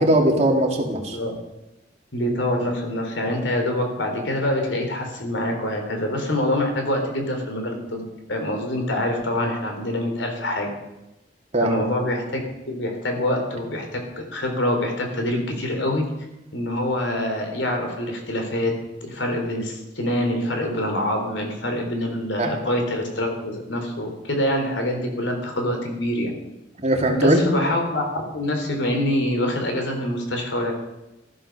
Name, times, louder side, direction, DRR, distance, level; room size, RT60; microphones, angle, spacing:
voice 1, 0.0-1.2 11.5-11.8 22.4-22.5 26.8-27.4, right 1 dB, 40° right, 1 dB, 2.7 m, -19 dB
voice 2, 1.0-1.4 2.1-8.0 8.3-10.7 11.6-12.4 12.7-16.1 16.5-18.7 19.0-26.3 27.2-30.7, left 1 dB, 85° left, 3 dB, 4.0 m, -25 dB
15.0 x 13.0 x 6.8 m, 0.94 s
head